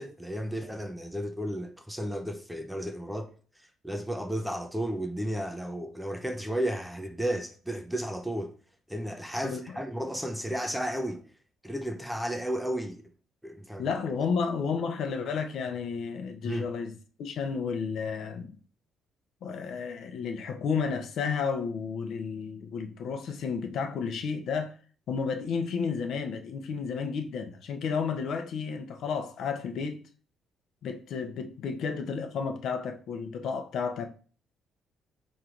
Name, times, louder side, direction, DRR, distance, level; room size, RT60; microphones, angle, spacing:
voice 1, 0.0-3.3 3.8-8.5 8.9-11.3 11.6-13.0 13.4-13.9 16.4-16.7, equal, ahead, 0.5 m, -33 dB
voice 2, 9.4-9.8 13.8-16.9 17.2-18.5 19.4-24.7 25.1-30.0 30.8-34.1, left 5 dB, 60° left, 0.7 m, -32 dB
4.5 x 3.2 x 3.8 m
cardioid pair, 145°, 0 cm